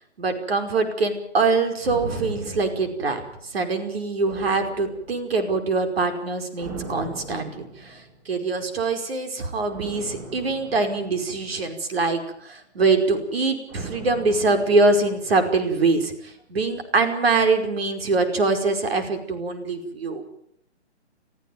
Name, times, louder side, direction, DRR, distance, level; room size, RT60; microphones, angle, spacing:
voice 1, 0.2-20.2, right 3 dB, 60° right, 6 dB, 5.2 m, -24 dB
sound 1, 1.8-3.7 4.2-5.5 6.6-8.3 9.7-12.1 13.7-15.9 16.1-16.2, right 2 dB, 25° right, 6.3 m, -39 dB
23.0 x 15.0 x 9.4 m, 0.69 s
hypercardioid pair, 165°, 34 cm